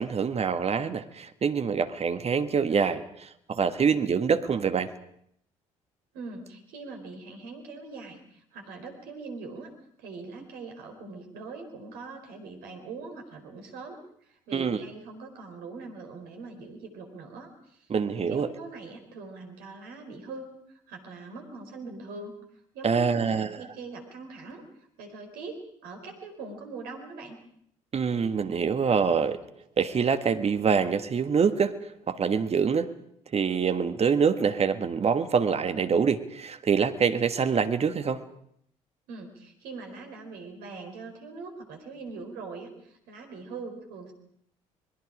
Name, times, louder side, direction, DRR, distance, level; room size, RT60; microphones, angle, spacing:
voice 1, 0.0-4.9 14.5-14.8 17.9-18.5 22.8-23.6 27.9-29.4 29.8-31.7 32.1-32.9 33.3-38.2, right 6 dB, 35° right, 10 dB, 1.6 m, -25 dB
voice 2, 6.1-9.7 10.0-22.3 22.7-24.6 25.0-27.4 39.1-44.1, right 3 dB, 65° right, 4 dB, 4.4 m, -42 dB
26.5 x 21.5 x 5.1 m, 0.69 s
figure-of-eight pair, 50°, 17 cm